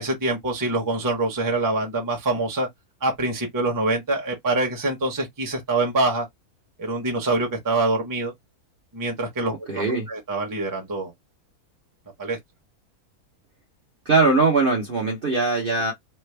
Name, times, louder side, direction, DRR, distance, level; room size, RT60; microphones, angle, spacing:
voice 1, 0.0-2.7 3.0-6.3 6.8-8.3 8.9-11.1 12.2-12.4, right 2 dB, 15° right, 0.9 m, -25 dB
voice 2, 9.7-10.1 14.1-15.9, right 3 dB, 40° right, 0.9 m, -21 dB
3.3 x 2.1 x 3.3 m
omnidirectional pair, 1.6 m